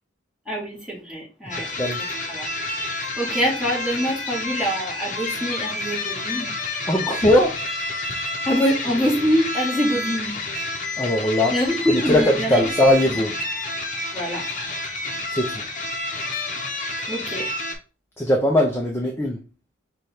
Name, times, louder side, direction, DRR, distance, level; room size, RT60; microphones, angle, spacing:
voice 1, 0.4-1.7 2.3-2.5 2.8-6.5 8.4-10.3 11.5-12.6 14.1-14.4 17.1-17.5, equal, 5° right, 1.6 m, -24 dB
sound 1, 1.5-17.8, left 2 dB, 40° left, 0.8 m, -29 dB
voice 2, 1.5-2.1 6.9-7.6 11.0-11.6 11.9-13.4 15.3-15.6 18.2-19.4, left 1 dB, 10° left, 0.5 m, -20 dB
4.9 x 2.3 x 4.1 m
head